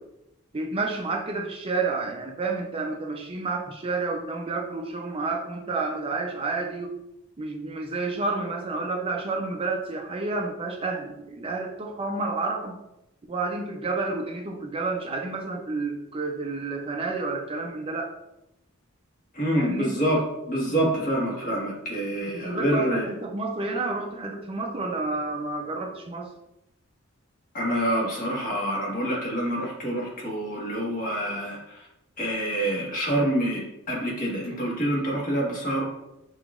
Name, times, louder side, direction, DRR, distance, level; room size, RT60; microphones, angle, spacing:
voice 1, 0.5-6.9 7.4-12.8 13.3-18.1 19.5-19.9 22.3-26.3, right 3 dB, 25° right, 1 dB, 0.4 m, -30 dB
voice 2, 19.3-23.1 27.5-31.9 32.2-35.8, right 1 dB, 40° left, -4 dB, 1.5 m, -27 dB
7.1 x 2.9 x 2.4 m, 0.88 s
head